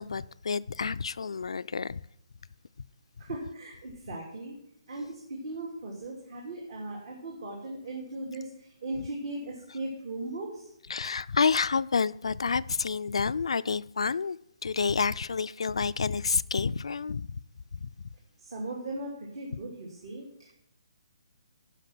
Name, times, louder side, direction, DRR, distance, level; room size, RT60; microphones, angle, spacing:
voice 1, 0.0-2.0 10.9-14.4 14.6-17.3 17.7-17.9, left 5 dB, 80° left, 0.4 m, -29 dB
voice 2, 3.2-4.6 4.9-10.7 18.4-20.5, right 2 dB, 60° right, 2.7 m, -38 dB
11.5 x 5.2 x 6.1 m
hypercardioid pair, 150°, 3 cm